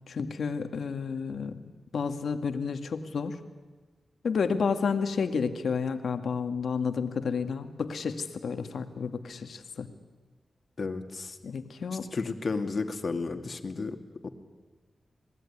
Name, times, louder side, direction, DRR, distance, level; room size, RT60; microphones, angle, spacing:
voice 1, 0.1-3.4 4.2-9.9 11.4-12.1, left 5 dB, 80° left, 8 dB, 1.8 m, -31 dB
voice 2, 10.8-11.4 11.9-14.0 14.2-14.3, left 4 dB, 55° left, 7 dB, 2.3 m, -33 dB
26.5 x 19.0 x 10.0 m, 1.3 s
cardioid pair, 70°, 0 cm